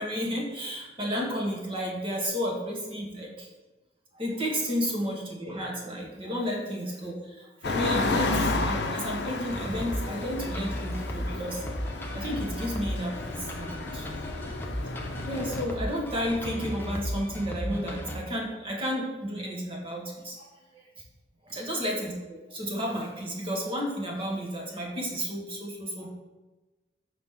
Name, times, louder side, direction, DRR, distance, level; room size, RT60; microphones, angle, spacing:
voice 1, 0.0-3.5 4.2-8.4 8.6-11.6 12.1-14.1 15.3-20.5 20.7-20.8 21.5-26.1, equal, 30° right, -2 dB, 1.4 m, -32 dB
sound 1, 7.6-15.6, left 3 dB, 70° left, 0.6 m, -32 dB
Noisy lofi Hip Hop, 9.5-18.2, equal, 10° left, 0.6 m, -36 dB
5.8 x 4.9 x 3.7 m, 1.1 s
head